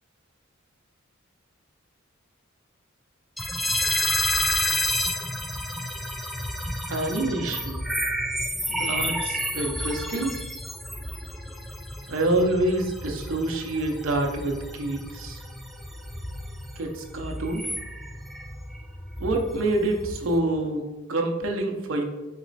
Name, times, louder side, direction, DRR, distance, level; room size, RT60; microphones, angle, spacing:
sound 1, 3.4-20.4, left 1 dB, ahead, 0.4 m, -31 dB
voice 1, 6.9-7.8 8.7-10.3 12.1-15.4 16.8-17.6 19.2-20.8 21.1-22.0, right 2 dB, 70° right, 2 dB, 0.7 m, -27 dB
4.1 x 3.0 x 4.0 m, 1.1 s
head